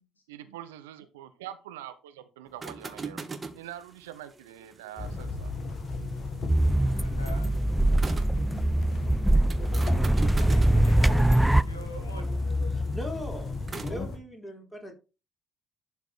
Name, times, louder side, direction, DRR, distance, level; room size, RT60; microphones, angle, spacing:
voice 1, 0.3-3.2 3.5-5.5, right 12 dB, 70° right, 0.7 m, -44 dB
sound 1, 2.5-8.4 9.5-14.0, right 4 dB, 25° right, 1.7 m, -43 dB
sound 2, 5.0-14.2, left 3 dB, 45° left, 2.0 m, -34 dB
voice 2, 5.9-7.5 8.3-11.3 11.6-12.4 14.6-14.7, equal, 85° left, 1.6 m, -48 dB
sound 3, 6.5-11.6, right 1 dB, 5° right, 0.4 m, -23 dB
voice 3, 12.7-14.9, equal, 10° left, 4.2 m, -40 dB
11.5 x 4.7 x 4.4 m
figure-of-eight pair, 50°, 0 cm